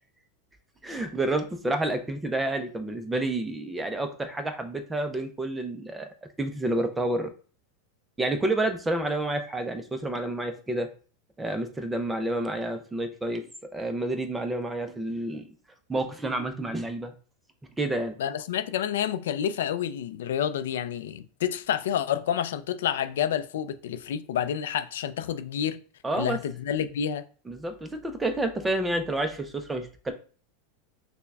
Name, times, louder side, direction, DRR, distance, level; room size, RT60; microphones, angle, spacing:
voice 1, 0.8-6.1 6.4-7.3 8.2-10.9 11.4-13.4 13.7-15.5 15.9-17.1 17.8-18.1 26.0-26.4 27.5-30.1, right 2 dB, 5° right, 0.3 m, -29 dB
voice 2, 18.2-25.8 26.1-27.2, left 9 dB, 85° left, 0.3 m, -29 dB
5.6 x 2.0 x 2.3 m
supercardioid pair, 165°, 0 cm